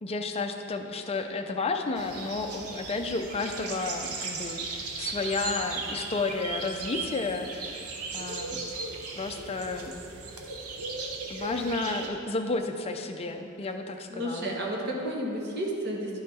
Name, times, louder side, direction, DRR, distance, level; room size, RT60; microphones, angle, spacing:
voice 1, 0.0-7.8 8.1-8.6 9.2-9.9 11.3-14.5, left 3 dB, 25° left, 4 dB, 0.5 m, -32 dB
sound 1, 2.0-12.1, right 4 dB, 90° right, 0.8 m, -37 dB
voice 2, 14.1-16.2, right 1 dB, 50° right, -1 dB, 1.2 m, -32 dB
10.5 x 5.6 x 4.2 m, 3.0 s
head